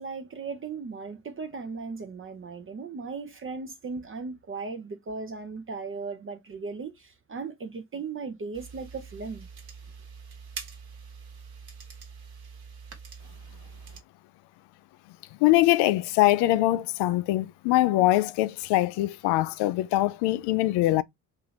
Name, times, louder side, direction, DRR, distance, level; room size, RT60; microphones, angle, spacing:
voice 1, 0.0-9.5, right 4 dB, 25° right, 0.7 m, -37 dB
sound 1, 8.5-14.0, right 6 dB, 50° right, 1.3 m, -44 dB
voice 2, 15.4-21.0, left 16 dB, 60° left, 0.5 m, -23 dB
2.8 x 2.7 x 3.9 m
hypercardioid pair, 55°, 47 cm